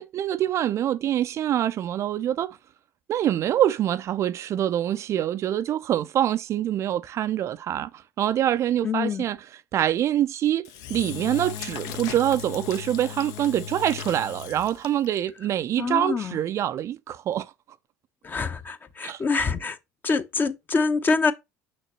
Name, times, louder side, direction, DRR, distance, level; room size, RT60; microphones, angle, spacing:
voice 1, 0.0-2.6 3.1-7.9 8.2-9.4 9.7-17.5 19.0-19.2, right 11 dB, 40° right, 0.4 m, -25 dB
voice 2, 8.8-9.3 15.8-16.4 18.2-19.8 20.0-21.3, left 4 dB, 25° left, 0.9 m, -25 dB
Engine / Drill, 10.6-15.2, left 10 dB, 55° left, 0.7 m, -37 dB
6.2 x 5.9 x 3.0 m
figure-of-eight pair, 65°, 7 cm